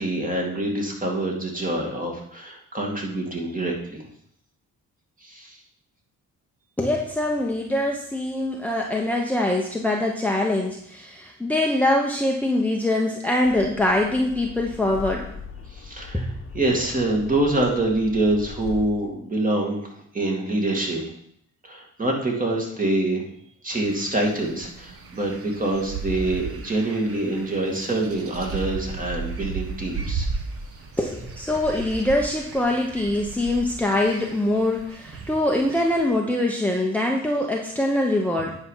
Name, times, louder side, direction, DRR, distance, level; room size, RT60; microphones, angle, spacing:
voice 1, 0.0-4.0 5.2-5.6 15.7-21.0 21.6-23.3 23.6-30.3, right 2 dB, 25° right, 0 dB, 2.3 m, -25 dB
voice 2, 6.8-15.3 16.1-16.4 17.6-17.7 31.0-38.6, left 1 dB, 5° left, -1 dB, 1.0 m, -23 dB
sound 1, 13.4-18.9, left 5 dB, 40° left, 1.2 m, -40 dB
sound 2, 23.7-36.0, right 4 dB, 45° right, 1.3 m, -35 dB
9.6 x 5.0 x 5.7 m, 0.70 s
cardioid pair, 100°, 32 cm